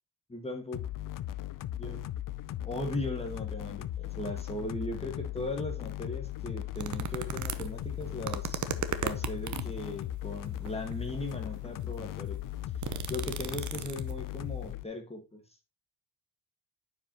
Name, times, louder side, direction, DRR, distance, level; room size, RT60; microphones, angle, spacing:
voice 1, 0.3-0.9 1.8-2.1 2.6-8.6 9.0-12.4 13.1-15.4, left 2 dB, 15° left, 1.6 m, -38 dB
sound 1, 0.7-14.8, left 13 dB, 50° left, 0.5 m, -38 dB
sound 2, 6.8-9.8 10.6-11.1 11.7-11.8 12.1-14.3 14.6-14.7, right 8 dB, 40° right, 0.9 m, -36 dB
9.5 x 5.5 x 2.9 m
cardioid pair, 105°, 44 cm